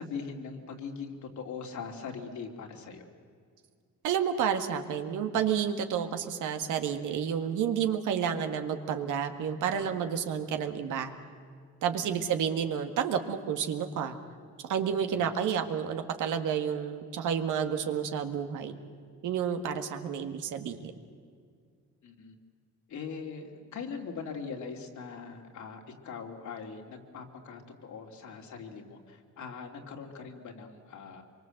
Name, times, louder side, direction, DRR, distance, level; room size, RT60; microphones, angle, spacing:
voice 1, 0.0-3.1 11.9-12.3 15.1-15.3 22.0-22.3 22.9-31.2, left 5 dB, 70° left, 2 dB, 3.0 m, -41 dB
voice 2, 4.0-11.1 11.8-14.2 14.7-18.8 19.2-20.9, right 8 dB, 80° right, 6 dB, 1.8 m, -30 dB
24.5 x 23.5 x 7.9 m, 2.1 s
cardioid pair, 90°, 30 cm